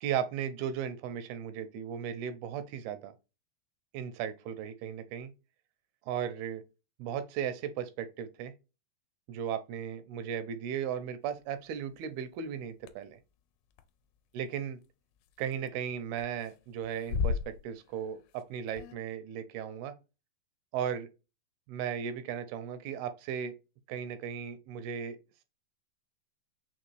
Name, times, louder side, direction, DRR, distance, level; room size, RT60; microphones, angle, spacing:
voice 1, 0.0-3.1 3.9-5.3 6.1-6.6 7.0-8.5 9.3-13.2 14.3-14.8 15.4-19.9 20.7-21.1 21.7-23.5 23.9-25.2, right 8 dB, 85° right, 2.5 m, -36 dB
sound 1, 12.0-12.1 12.9-13.0 13.7-13.8 15.3-15.8 16.1-16.5 16.8-18.1 18.4-18.5 18.7-19.0, left 5 dB, 90° left, 2.5 m, -34 dB
6.0 x 2.4 x 3.1 m
omnidirectional pair, 4.4 m